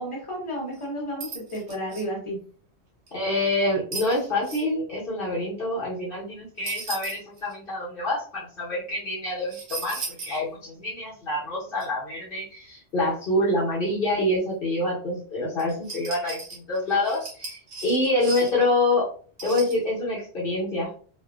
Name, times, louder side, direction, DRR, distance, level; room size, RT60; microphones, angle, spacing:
voice 1, 0.0-2.4, equal, 30° left, -4 dB, 1.1 m, -32 dB
sound 1, 0.7-0.8 1.2-2.0 3.1-3.2 3.9-4.6 6.6-7.5 9.5-10.4 10.8-10.9 11.8-11.9 15.6-18.7 19.4-19.8, right 3 dB, 60° right, 0.9 m, -37 dB
voice 2, 3.1-19.1 19.4-20.9, left 1 dB, 55° left, -7 dB, 1.1 m, -26 dB
2.7 x 2.5 x 2.3 m, 0.43 s
omnidirectional pair, 1.2 m